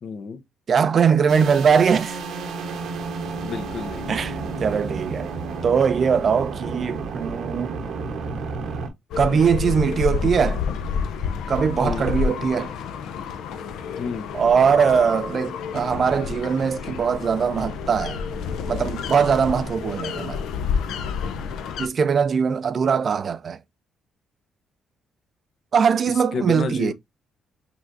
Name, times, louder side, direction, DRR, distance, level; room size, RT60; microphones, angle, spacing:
voice 1, 0.0-0.4 3.4-4.2 11.8-12.1 14.0-14.3 26.3-26.9, left 5 dB, 60° left, 0.9 m, -30 dB
voice 2, 0.7-2.2 4.1-5.3 5.6-7.8 9.2-10.6 11.5-12.7 14.3-18.2 18.7-20.4 21.8-23.6 25.7-26.9, right 6 dB, 50° right, 0.4 m, -21 dB
sound 1, 1.3-8.9, right 4 dB, 75° right, 1.0 m, -31 dB
sound 2, 9.1-21.9, left 6 dB, 85° left, 0.6 m, -29 dB
5.5 x 3.1 x 2.6 m
cardioid pair, 90°, 0 cm